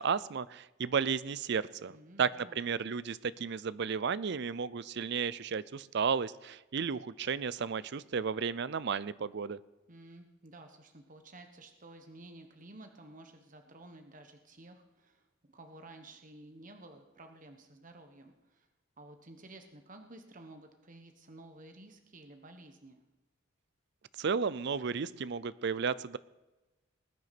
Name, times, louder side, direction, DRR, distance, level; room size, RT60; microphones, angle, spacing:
voice 1, 0.0-9.6 24.2-26.2, right 6 dB, 55° right, 18 dB, 0.5 m, -33 dB
voice 2, 1.9-2.6 9.9-18.7 19.0-23.0, right 2 dB, 40° right, 6 dB, 1.2 m, -53 dB
20.0 x 9.4 x 5.9 m, 1.1 s
head